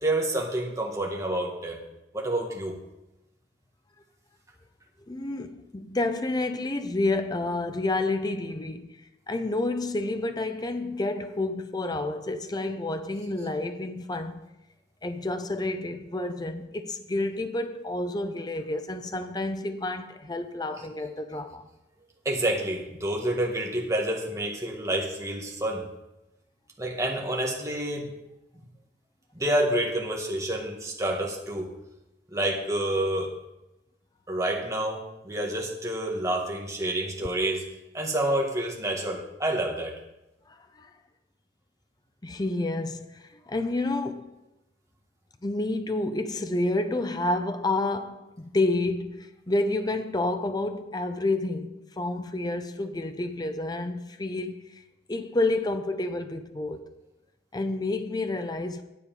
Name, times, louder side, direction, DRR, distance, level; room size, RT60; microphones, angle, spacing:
voice 1, 0.0-1.8 2.1-2.8 22.2-25.8 26.8-28.1 29.3-31.7 32.3-33.3 34.3-37.7 37.9-39.9, right 1 dB, 20° right, 1.6 m, -28 dB
voice 2, 5.1-9.0 9.3-14.4 15.0-21.7 40.5-40.9 42.2-44.3 45.4-54.8 55.1-56.8 57.5-58.8, left 2 dB, 20° left, 0.6 m, -29 dB
10.0 x 8.2 x 5.3 m
head